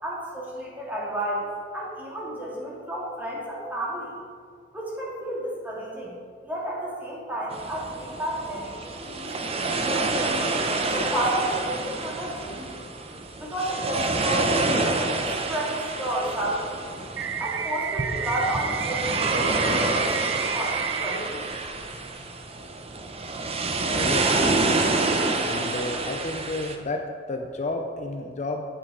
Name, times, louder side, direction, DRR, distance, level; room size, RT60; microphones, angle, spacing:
voice 1, 0.0-4.1 4.7-6.1 6.4-10.3 10.8-12.8 13.4-15.2 15.5-16.9 17.4-21.6, right 1 dB, 10° right, -6 dB, 2.4 m, -31 dB
sound 1, 7.5-26.8, right 3 dB, 35° right, 0.7 m, -27 dB
sound 2, 17.2-21.2, right 8 dB, 75° right, 0.5 m, -31 dB
voice 2, 23.8-25.1 25.4-28.7, left 2 dB, 40° left, 4 dB, 0.5 m, -32 dB
8.5 x 7.6 x 4.9 m, 2.1 s
head